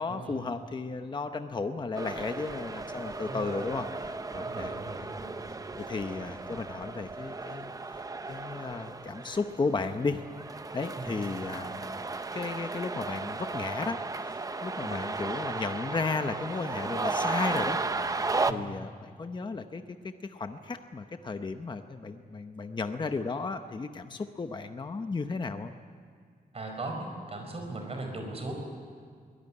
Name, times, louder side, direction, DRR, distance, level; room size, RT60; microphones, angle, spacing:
voice 1, 0.0-4.7 5.0-5.1 5.5-8.0 8.3-10.2 10.7-12.0 12.3-14.0 14.3-25.7, left 4 dB, 30° left, 8 dB, 0.8 m, -34 dB
sound 1, 1.9-18.5, right 3 dB, 20° right, 0.7 m, -35 dB
voice 2, 3.2-3.7 4.4-5.4 11.0-11.1 14.8-15.0 18.5-18.6 26.5-28.5, right 2 dB, 40° right, 3 dB, 5.0 m, -38 dB
23.5 x 18.0 x 9.8 m, 2.1 s
wide cardioid pair, 175°, 16 cm